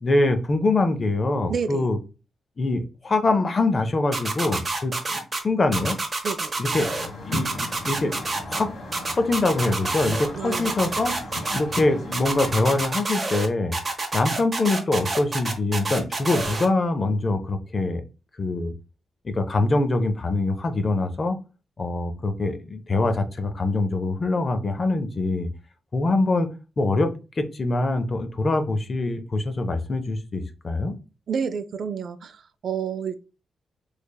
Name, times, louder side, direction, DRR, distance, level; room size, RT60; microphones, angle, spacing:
voice 1, 0.0-2.0 2.6-5.2 5.4-6.0 6.6-6.9 7.2-8.1 8.5-8.7 9.1-11.2 11.5-13.7 14.1-18.0 18.4-18.7 19.2-21.4 21.8-25.5 25.9-26.5 26.8-27.1 27.4-31.0, left 2 dB, 35° left, 0.6 m, -24 dB
voice 2, 1.5-1.8 6.2-6.5 10.4-10.8 31.3-33.2, right 6 dB, 60° right, 0.4 m, -29 dB
sound 1, 4.1-5.4 5.7-7.1 7.3-8.6 8.9-10.3 10.5-11.8 12.1-13.5 13.7-16.7, right 3 dB, 30° right, 0.9 m, -28 dB
sound 2, 6.7-12.8, left 1 dB, 65° left, 1.3 m, -36 dB
3.3 x 3.3 x 2.2 m
wide cardioid pair, 125°, 0 cm